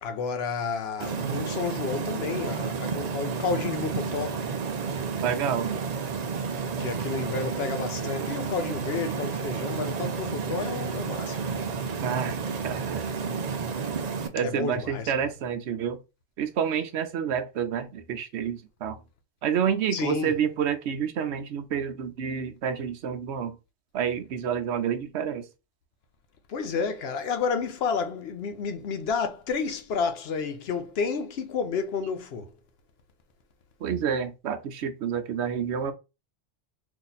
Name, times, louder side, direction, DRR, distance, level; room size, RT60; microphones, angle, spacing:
voice 1, 0.0-4.4 6.8-11.6 14.4-15.1 19.9-20.3 26.5-32.5, left 5 dB, 70° left, 0.8 m, -31 dB
sound 1, 1.0-14.3, right 5 dB, 55° right, 0.5 m, -31 dB
voice 2, 5.2-5.7 12.0-12.4 12.6-13.0 14.3-16.0 16.4-19.0 19.4-23.5 23.9-25.4 33.8-35.9, right 8 dB, 75° right, 0.9 m, -29 dB
2.8 x 2.6 x 3.9 m
omnidirectional pair, 1.2 m